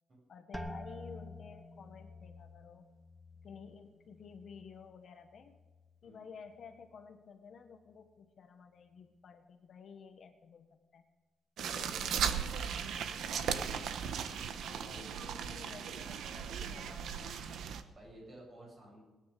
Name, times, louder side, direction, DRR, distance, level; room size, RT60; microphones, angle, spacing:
voice 1, 0.3-2.9 3.4-5.6 6.0-11.0 11.6-14.0 14.7-17.8, left 6 dB, 45° left, 6 dB, 1.2 m, -53 dB
sound 1, 0.5-6.2 6.5-7.2 7.7-8.1, left 1 dB, ahead, 0.9 m, -50 dB
sound 2, 11.6-17.8, right 7 dB, 70° right, 1.0 m, -37 dB
voice 2, 17.9-19.0, right 1 dB, 30° right, -2 dB, 7.5 m, -53 dB
20.0 x 9.8 x 6.8 m, 1.2 s
cardioid pair, 175°, 0 cm